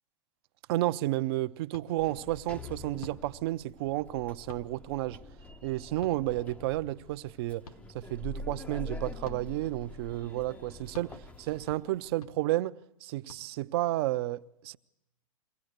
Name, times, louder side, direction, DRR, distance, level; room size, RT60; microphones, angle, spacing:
voice 1, 0.7-5.2 5.6-7.6 7.9-12.8 13.0-14.8, right 16 dB, 45° right, 0.7 m, -32 dB
sound 1, 1.7-1.9 3.0-3.2 4.5-4.7 6.0-6.2 7.6-7.8 9.2-9.4 10.9-11.1 12.2-12.3 13.3-13.4, left 2 dB, 80° left, 2.1 m, -45 dB
Sliding door, 2.0-12.1, left 1 dB, 10° left, 0.7 m, -45 dB
23.5 x 16.5 x 8.0 m
hypercardioid pair, 130°, 18 cm